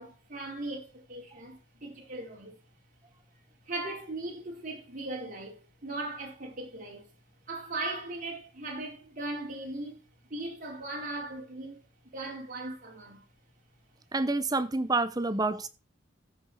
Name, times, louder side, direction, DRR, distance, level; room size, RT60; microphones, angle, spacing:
voice 1, 0.0-2.6 3.7-7.1 7.5-13.2, right 2 dB, 40° right, 4.1 m, -38 dB
voice 2, 14.1-15.7, right 3 dB, 20° right, 0.8 m, -28 dB
14.5 x 6.5 x 4.2 m
head